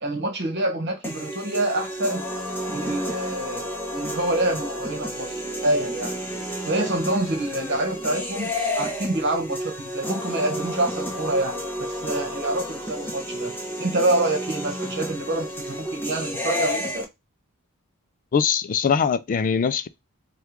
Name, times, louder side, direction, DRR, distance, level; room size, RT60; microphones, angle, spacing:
voice 1, 0.0-2.3 2.7-6.2 6.6-13.5 13.8-17.1, right 1 dB, 55° right, 1.0 m, -27 dB
sound 1, 1.0-17.0, equal, 10° left, 0.7 m, -31 dB
voice 2, 18.3-19.9, left 6 dB, 40° left, 0.3 m, -22 dB
3.5 x 2.3 x 2.9 m
head